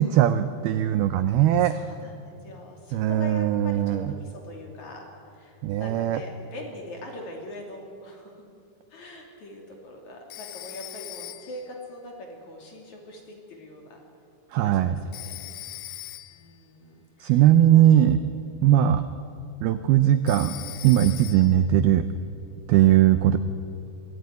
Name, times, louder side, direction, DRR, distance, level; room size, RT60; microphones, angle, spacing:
voice 1, 0.0-1.7 2.9-4.0 5.6-6.2 14.5-15.0 17.2-18.2 18.6-19.0 19.6-20.5 20.8-22.0 22.7-23.4, right 11 dB, 85° right, 11 dB, 2.2 m, -19 dB
voice 2, 1.6-8.3 8.9-14.0 14.5-15.4 15.7-15.8 16.3-17.9 18.6-18.8 22.7-22.9, left 1 dB, 45° left, 1 dB, 3.7 m, -42 dB
Telephone, 10.3-11.7 15.1-16.5 20.3-21.7, left 16 dB, 80° left, 3.2 m, -40 dB
24.0 x 15.5 x 9.6 m, 2.5 s
omnidirectional pair, 5.3 m